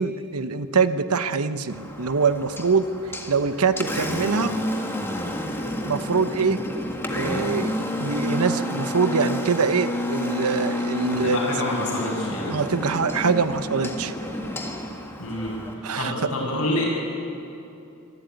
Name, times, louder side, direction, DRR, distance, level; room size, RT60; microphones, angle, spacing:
voice 1, 0.0-2.9 3.3-4.6 5.8-6.6 7.1-11.4 12.5-14.1 15.8-16.1, right 5 dB, 85° right, 11 dB, 0.9 m, -24 dB
Engine, 1.7-15.7, left 1 dB, 10° left, 1.7 m, -30 dB
voice 2, 11.1-12.6 15.2-15.5 16.0-16.8, left 1 dB, 90° left, -2 dB, 7.0 m, -27 dB
24.5 x 13.0 x 9.2 m, 2.8 s
head